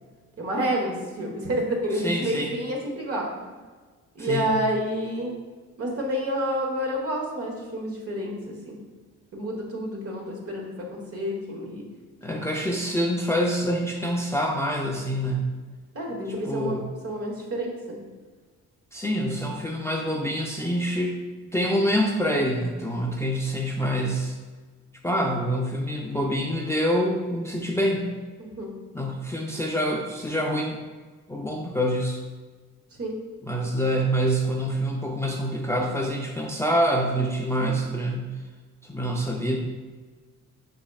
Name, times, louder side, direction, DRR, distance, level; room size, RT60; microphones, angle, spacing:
voice 1, 0.4-3.5 4.1-5.3 5.8-8.8 9.3-11.9 12.3-12.4 15.9-18.0 28.4-28.7 32.9-33.2, equal, 50° right, -1 dB, 1.2 m, -29 dB
voice 2, 2.0-2.5 4.2-4.5 12.2-15.5 16.4-16.8 18.9-21.2 21.4-24.3 25.0-28.1 28.9-30.8 31.3-32.2 33.4-38.3 38.8-39.6, equal, 10° left, 0 dB, 0.5 m, -26 dB
5.3 x 4.1 x 2.3 m, 1.4 s
cardioid pair, 75°, 31 cm